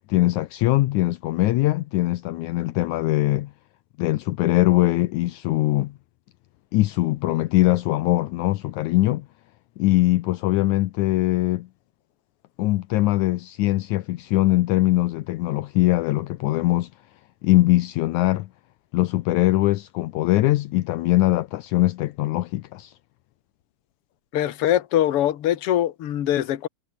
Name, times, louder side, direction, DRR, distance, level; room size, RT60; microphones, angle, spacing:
voice 1, 0.1-3.5 4.0-5.9 6.7-9.3 9.8-11.7 12.6-16.9 17.4-18.5 18.9-22.9, left 17 dB, 75° left, 2.0 m, -21 dB
voice 2, 24.3-26.7, left 12 dB, 55° left, 2.0 m, -22 dB
omnidirectional pair, 3.7 m